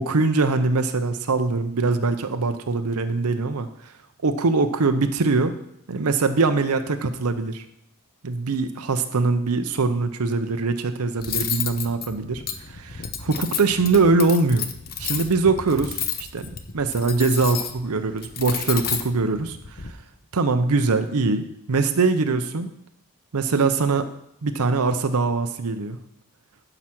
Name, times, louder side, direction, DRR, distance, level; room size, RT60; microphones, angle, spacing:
voice 1, 0.0-3.7 4.2-5.6 5.9-7.6 8.2-14.7 15.0-16.5 16.7-19.9 20.3-22.7 23.3-24.1 24.4-26.0, right 3 dB, 85° right, 8 dB, 0.7 m, -22 dB
Cutlery silverware, 11.2-19.9, left 8 dB, 45° left, 0.8 m, -31 dB
12.0 x 5.0 x 5.9 m, 0.77 s
head